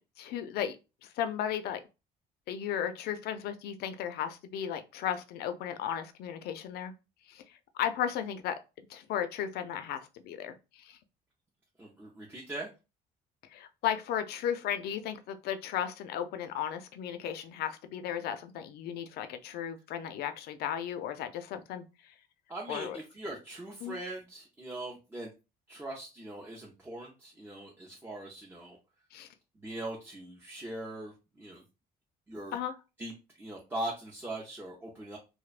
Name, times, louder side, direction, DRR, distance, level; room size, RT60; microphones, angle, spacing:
voice 1, 0.2-0.8 1.0-1.8 2.5-6.9 7.3-7.4 7.7-8.6 8.9-11.0 13.5-21.8 22.7-23.0 23.8-24.0 29.1-29.3 32.5-32.7, left 9 dB, 70° left, 0.4 m, -35 dB
voice 2, 11.8-12.7 22.5-25.3 25.7-28.8 29.6-31.6 32.3-32.5 33.0-33.1 33.4-35.2, right 1 dB, 15° right, 0.5 m, -41 dB
2.5 x 2.0 x 2.4 m
cardioid pair, 110°, 17 cm